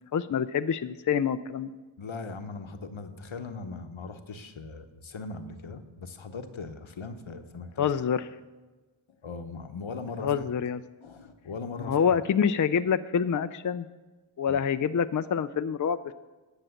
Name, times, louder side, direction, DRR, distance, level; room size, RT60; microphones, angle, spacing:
voice 1, 0.0-1.7 7.8-8.3 10.2-10.8 11.9-13.9 14.4-16.1, left 7 dB, 45° left, 12 dB, 0.4 m, -26 dB
voice 2, 2.0-7.9 9.2-10.5 11.0-12.2 14.5-14.6, left 4 dB, 75° left, 8 dB, 0.9 m, -39 dB
10.0 x 6.5 x 7.8 m, 1.2 s
wide cardioid pair, 40°, 47 cm